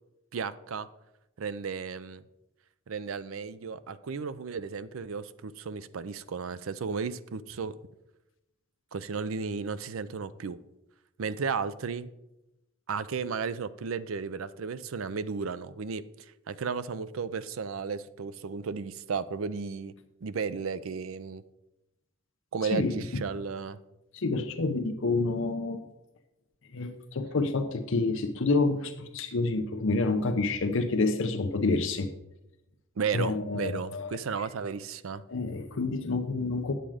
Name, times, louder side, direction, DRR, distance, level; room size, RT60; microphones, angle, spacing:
voice 1, 0.3-0.9 1.4-2.2 2.9-7.8 8.9-10.6 11.2-12.1 12.9-19.9 20.2-21.4 22.5-23.8 33.0-35.2, right 5 dB, 80° right, 14 dB, 0.5 m, -34 dB
voice 2, 22.7-23.2 24.1-25.8 26.7-32.1 33.1-34.1 35.3-36.7, left 3 dB, 70° left, 6 dB, 0.7 m, -28 dB
9.1 x 7.5 x 4.9 m, 0.92 s
head